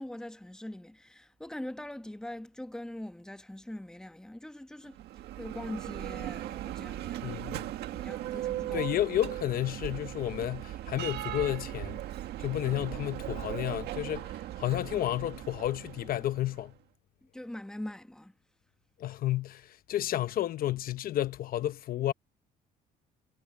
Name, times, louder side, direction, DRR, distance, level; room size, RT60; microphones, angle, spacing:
voice 1, 0.0-5.0 5.4-7.4 7.9-8.9 17.3-18.3, left 1 dB, 5° left, 1.1 m, -42 dB
Bell, 4.9-16.7, right 13 dB, 75° right, 1.7 m, -38 dB
voice 2, 7.2-7.7 8.7-12.0 12.4-16.7 19.0-22.1, left 13 dB, 60° left, 0.8 m, -31 dB
cardioid pair, 110°, 17 cm